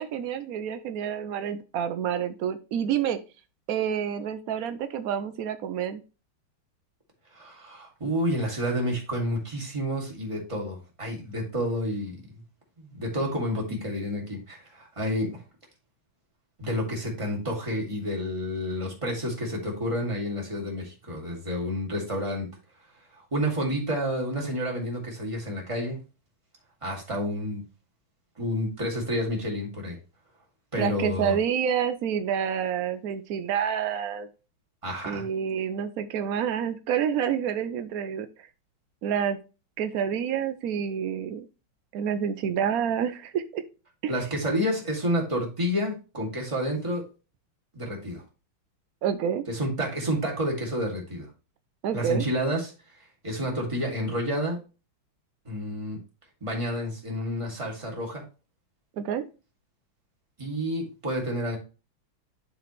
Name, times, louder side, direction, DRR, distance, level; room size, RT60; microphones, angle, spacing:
voice 1, 0.0-3.2 3.7-6.0 30.8-34.3 35.1-38.5 39.0-39.4 39.8-41.5 41.9-43.6 44.0-44.1 49.0-49.4 51.8-52.3 59.0-59.2, right 8 dB, 85° right, 9 dB, 0.7 m, -28 dB
voice 2, 7.3-12.2 12.8-15.4 16.6-22.5 23.3-26.0 26.8-27.6 28.4-30.0 30.7-31.4 34.8-35.3 44.1-47.0 47.7-48.2 49.5-51.3 51.9-52.7 53.2-54.6 55.5-56.0 56.4-58.2 60.4-61.6, equal, 15° right, -1 dB, 2.1 m, -29 dB
11.5 x 3.9 x 3.1 m, 0.32 s
omnidirectional pair, 2.3 m